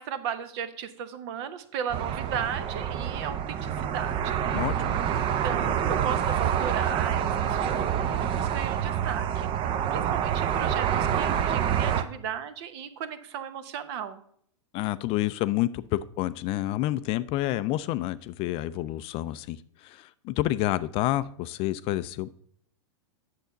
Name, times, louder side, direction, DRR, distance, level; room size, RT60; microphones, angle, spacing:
voice 1, 0.0-4.6 5.3-9.5 9.9-14.2, right 8 dB, 55° right, 12 dB, 0.9 m, -35 dB
sound 1, 1.9-12.0, right 9 dB, 35° right, 0.6 m, -27 dB
voice 2, 4.5-5.0 14.7-22.3, left 15 dB, 35° left, 15 dB, 0.4 m, -29 dB
8.3 x 6.9 x 3.8 m, 0.65 s
hypercardioid pair, 115°, 16 cm